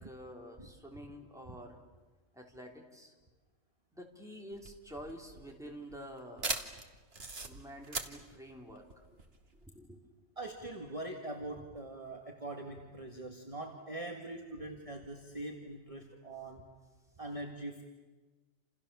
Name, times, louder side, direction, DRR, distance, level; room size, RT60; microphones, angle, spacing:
voice 1, 0.0-1.8 2.3-3.1 3.9-6.7 7.5-9.2 9.6-10.0, equal, 5° right, 0 dB, 3.7 m, -49 dB
sound 1, 4.5-9.7, right 3 dB, 55° right, 2.1 m, -41 dB
voice 2, 10.4-16.7 17.2-17.8, right 2 dB, 30° right, 2 dB, 2.0 m, -43 dB
29.5 x 28.0 x 7.1 m, 1.3 s
omnidirectional pair, 1.2 m